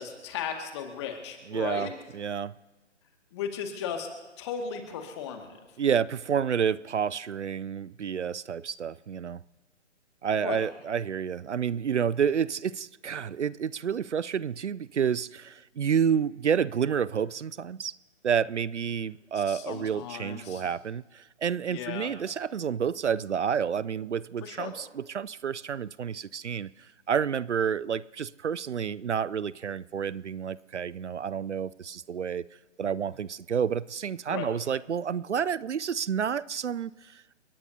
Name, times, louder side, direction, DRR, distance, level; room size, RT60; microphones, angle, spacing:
voice 1, 0.0-1.9 3.3-4.1 4.4-5.6 10.4-10.7 19.3-20.6 21.7-22.1 24.4-24.7 34.3-34.5, left 7 dB, 25° left, 1.9 m, -36 dB
voice 2, 1.5-1.9 2.1-2.5 5.8-9.4 10.2-18.0 18.2-26.7 27.1-32.5 32.8-37.3, right 7 dB, 70° right, 0.5 m, -29 dB
30.0 x 17.5 x 2.7 m
figure-of-eight pair, 140°, 36 cm